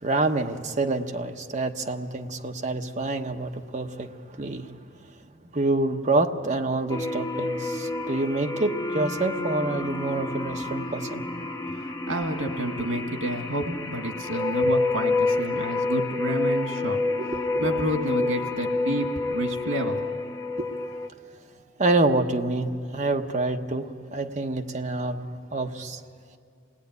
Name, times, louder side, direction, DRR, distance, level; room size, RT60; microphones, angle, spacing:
voice 1, 0.0-4.1 4.4-4.7 5.5-11.2 17.2-17.7 20.6-20.7 21.8-25.2 25.5-26.0, right 2 dB, 35° right, 4 dB, 1.1 m, -27 dB
sound 1, 6.9-21.1, left 2 dB, 15° left, 0.8 m, -29 dB
voice 2, 12.1-17.0 17.6-20.0, right 1 dB, 85° right, 5 dB, 2.2 m, -29 dB
27.5 x 19.0 x 9.5 m, 2.2 s
head